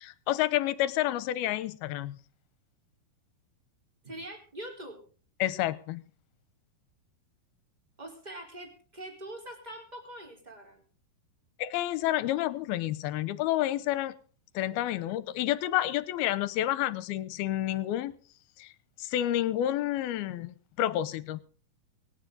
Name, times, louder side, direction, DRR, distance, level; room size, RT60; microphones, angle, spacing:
voice 1, 0.0-2.2 5.4-6.0 11.6-14.2 14.5-18.1 18.6-18.7 19.0-21.4, left 13 dB, 80° left, 17 dB, 2.7 m, -29 dB
voice 2, 4.0-5.0 8.0-10.9, right 1 dB, 10° right, 2 dB, 4.0 m, -43 dB
24.0 x 10.0 x 4.0 m, 0.41 s
omnidirectional pair, 4.5 m